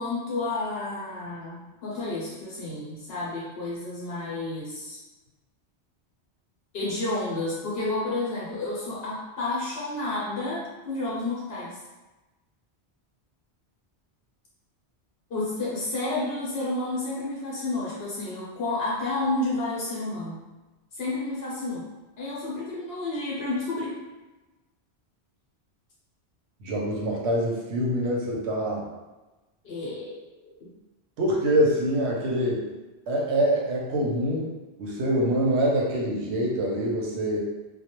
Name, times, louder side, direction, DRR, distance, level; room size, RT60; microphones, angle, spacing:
voice 1, 0.0-5.0 6.7-11.8 15.3-20.4 20.9-21.9 22.2-24.0 29.6-30.7, left 2 dB, 70° left, -5 dB, 0.8 m, -31 dB
voice 2, 26.6-28.8 31.2-32.6 33.1-34.5 34.8-37.4, right 1 dB, 85° right, -2 dB, 0.9 m, -25 dB
2.2 x 2.0 x 2.9 m, 1.1 s
omnidirectional pair, 1.1 m